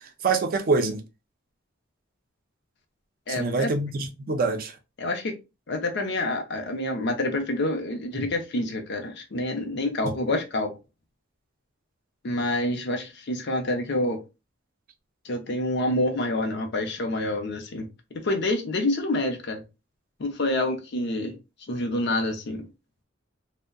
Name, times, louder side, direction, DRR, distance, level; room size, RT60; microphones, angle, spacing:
voice 1, 0.2-1.0 3.3-4.7, right 3 dB, 45° right, 0.4 m, -25 dB
voice 2, 3.3-3.7 5.0-5.3 5.7-10.7 12.2-14.2 15.2-19.6 20.2-21.4 21.7-22.6, left 1 dB, 60° left, 0.6 m, -27 dB
2.6 x 2.1 x 2.4 m
head